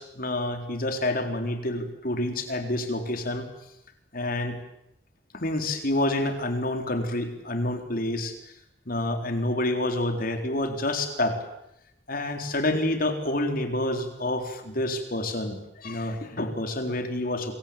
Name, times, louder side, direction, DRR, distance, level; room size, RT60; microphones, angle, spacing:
voice 1, 0.0-3.5 4.1-4.6 5.3-8.3 8.9-11.4 12.1-17.5, left 1 dB, 50° left, 5 dB, 4.1 m, -28 dB
26.5 x 23.5 x 8.9 m, 0.82 s
head